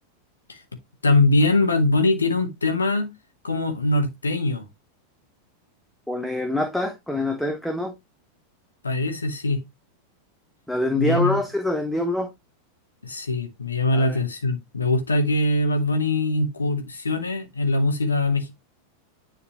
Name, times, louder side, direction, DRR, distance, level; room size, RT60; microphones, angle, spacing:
voice 1, 1.0-3.1 3.4-4.6 8.8-9.6 11.0-11.4 13.0-18.5, left 2 dB, 75° left, 1.6 m, -22 dB
voice 2, 6.1-7.9 10.7-12.3 13.9-14.2, left 1 dB, ahead, 1.1 m, -25 dB
9.9 x 4.4 x 3.0 m
figure-of-eight pair, 90°, 0 cm